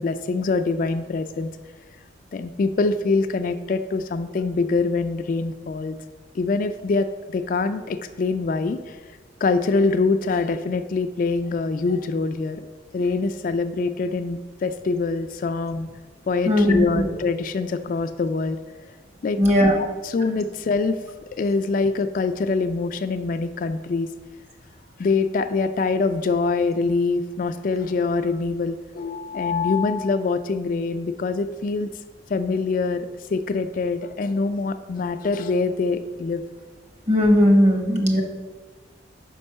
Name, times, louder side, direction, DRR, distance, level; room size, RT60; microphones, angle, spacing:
voice 1, 0.0-1.5 2.3-6.0 6.3-9.0 9.4-12.6 12.9-15.9 16.3-18.6 19.2-19.4 20.0-21.0 21.4-24.1 25.0-31.9 32.3-36.4, left 3 dB, 45° left, 9 dB, 0.3 m, -24 dB
voice 2, 16.5-17.1 19.4-19.8 37.1-38.2, equal, 35° right, 2 dB, 1.2 m, -17 dB
5.3 x 5.3 x 6.6 m, 1.4 s
head